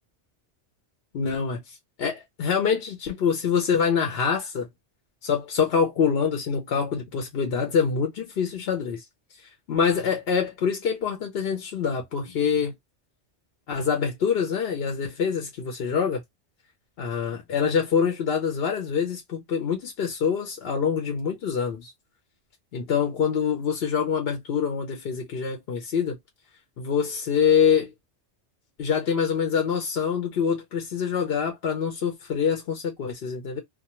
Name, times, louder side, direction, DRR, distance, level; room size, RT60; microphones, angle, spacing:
voice 1, 1.1-4.7 5.2-9.0 9.7-12.7 13.7-16.2 17.0-21.9 22.7-26.2 26.8-27.9 28.8-33.6, left 6 dB, 60° left, 0.8 m, -25 dB
2.3 x 2.2 x 2.9 m
omnidirectional pair, 1.2 m